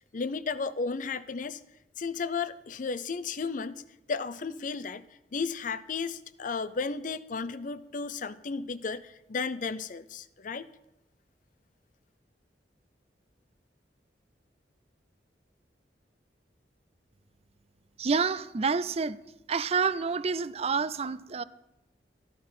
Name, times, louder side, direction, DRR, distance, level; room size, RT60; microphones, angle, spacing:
voice 1, 0.1-1.6 2.0-3.8 4.1-5.1 5.3-10.7, left 4 dB, 50° left, 0.5 m, -34 dB
voice 2, 18.0-19.2 19.5-21.4, right 5 dB, 35° right, 0.5 m, -28 dB
14.0 x 11.5 x 5.5 m
head